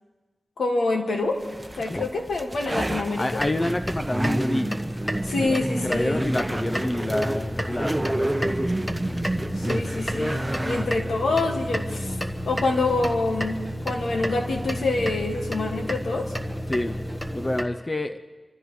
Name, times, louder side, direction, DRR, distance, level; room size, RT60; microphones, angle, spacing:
voice 1, 0.6-1.4 1.8-3.4 5.2-6.3 9.6-12.2 12.4-13.6 13.8-16.3, left 3 dB, 85° left, 2 dB, 1.9 m, -26 dB
sound 1, 1.4-15.3, right 1 dB, 20° right, 1.0 m, -31 dB
voice 2, 3.2-4.8 5.5-8.7 16.7-17.0 17.3-18.2, left 1 dB, 30° left, 9 dB, 0.7 m, -28 dB
sound 2, 3.3-17.6, equal, 10° left, 1.4 m, -31 dB
27.0 x 13.5 x 3.2 m, 1.3 s
cardioid pair, 45°, 0 cm